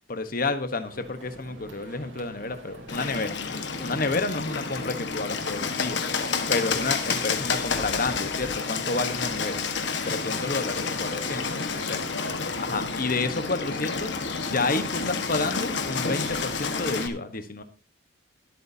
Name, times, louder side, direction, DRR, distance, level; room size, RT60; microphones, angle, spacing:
voice 1, 0.1-3.3 3.8-6.0 6.5-9.6 10.1-12.0 12.6-14.1 14.4-17.6, left 3 dB, 45° left, 9 dB, 1.1 m, -30 dB
sound 1, 0.8-16.8, right 1 dB, 70° right, 3.0 m, -47 dB
Bird, 2.9-17.1, left 5 dB, 60° left, 1.4 m, -30 dB
22.0 x 8.2 x 2.8 m, 0.33 s
head